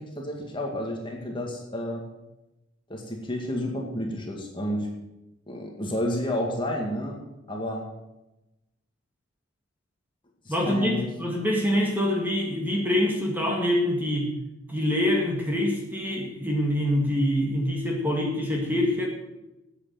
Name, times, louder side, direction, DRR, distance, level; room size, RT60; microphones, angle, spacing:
voice 1, 0.0-2.0 2.9-4.9 5.5-7.2 7.5-7.9 10.4-11.1, left 1 dB, 25° left, 0 dB, 2.1 m, -31 dB
voice 2, 10.5-14.3 14.7-19.1, left 1 dB, 10° right, -1 dB, 2.1 m, -25 dB
11.0 x 8.4 x 7.9 m, 0.97 s
head